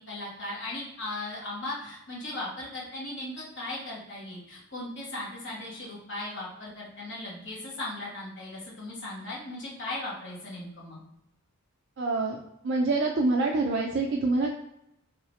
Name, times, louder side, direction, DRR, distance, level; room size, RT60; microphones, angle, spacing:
voice 1, 0.1-11.0, left 2 dB, 60° left, -5 dB, 1.4 m, -37 dB
voice 2, 12.0-12.4 12.6-14.5, right 3 dB, 55° right, 1 dB, 0.4 m, -26 dB
3.7 x 2.8 x 3.1 m, 0.80 s
head